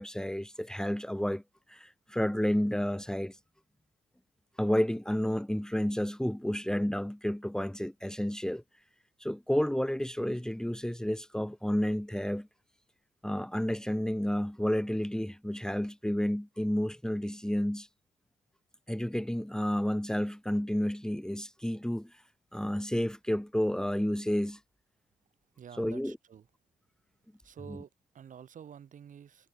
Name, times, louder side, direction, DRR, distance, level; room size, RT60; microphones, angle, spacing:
voice 1, 0.0-1.4 1.7-3.4 4.6-8.6 9.2-12.5 13.2-17.9 18.9-22.1 22.5-24.6 25.8-26.2, equal, 5° left, 3.5 m, -31 dB
voice 2, 25.6-26.5 27.4-29.5, right 8 dB, 50° right, 6.4 m, -49 dB
figure-of-eight pair, 45°, 16 cm